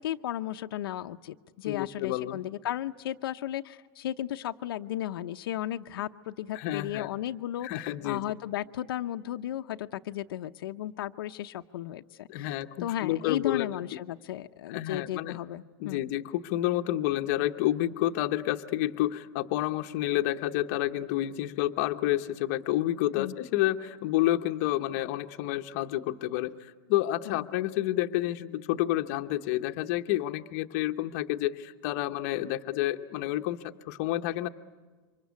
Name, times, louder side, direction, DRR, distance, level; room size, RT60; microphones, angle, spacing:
voice 1, 0.0-16.0 23.1-23.4 27.3-27.4, left 12 dB, 75° left, 7 dB, 0.7 m, -35 dB
voice 2, 1.6-2.4 6.5-7.1 7.6-8.2 12.3-13.8 14.7-15.4 15.8-33.6 33.9-34.5, left 15 dB, 40° left, 6 dB, 0.9 m, -29 dB
27.5 x 25.0 x 8.3 m, 1.4 s
supercardioid pair, 175°, 12 cm